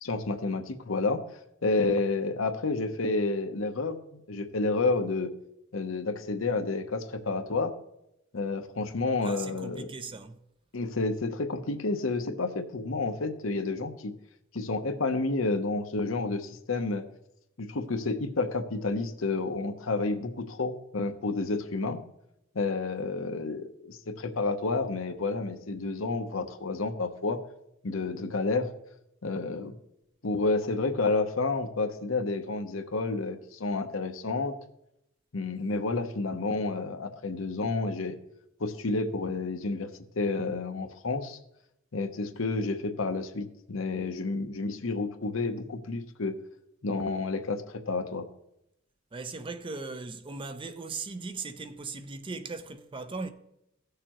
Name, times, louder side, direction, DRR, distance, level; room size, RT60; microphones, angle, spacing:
voice 1, 0.0-1.2 1.6-5.3 5.7-7.7 8.3-9.9 10.7-14.1 14.5-17.0 17.6-22.0 22.5-27.4 27.8-28.7 29.2-29.8 30.2-34.5 35.3-38.2 38.6-39.9 40.2-41.4 41.9-46.4 46.8-48.3, left 3 dB, 80° left, 0.9 m, -30 dB
voice 2, 9.2-10.4 49.1-53.3, right 4 dB, 25° right, 0.5 m, -38 dB
16.0 x 6.7 x 3.0 m
head